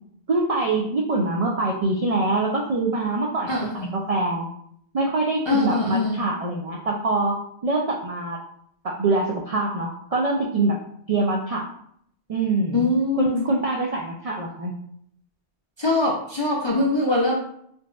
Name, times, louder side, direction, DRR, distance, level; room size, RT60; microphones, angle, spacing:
voice 1, 0.3-4.5 4.9-8.4 8.8-10.8 11.1-11.7 12.3-12.9 13.1-14.8, right 2 dB, 65° right, -2 dB, 0.3 m, -24 dB
voice 2, 3.5-3.9 5.5-6.2 12.7-13.4 15.8-17.4, left 2 dB, 50° left, -4 dB, 0.3 m, -22 dB
3.8 x 2.4 x 2.3 m, 0.68 s
omnidirectional pair, 1.1 m